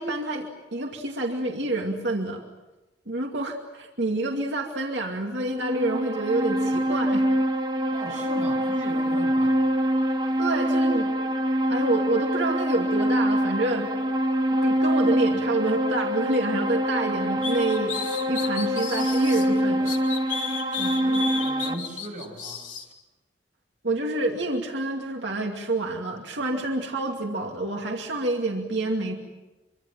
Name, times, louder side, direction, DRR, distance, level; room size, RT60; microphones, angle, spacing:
voice 1, 0.0-2.4 3.1-7.3 10.4-11.1 11.7-13.9 14.5-18.0 18.3-20.0 20.8-21.1 23.8-29.1, right 2 dB, 85° right, 2 dB, 2.4 m, -28 dB
sound 1, 5.4-21.7, equal, 25° right, 1.5 m, -25 dB
voice 2, 7.9-9.6 10.2-10.3 20.9-22.7, right 1 dB, 45° right, 2 dB, 6.0 m, -38 dB
sound 2, 17.4-19.5 19.9-22.8, left 6 dB, 45° left, 3.1 m, -33 dB
26.5 x 24.5 x 7.6 m, 1.1 s
head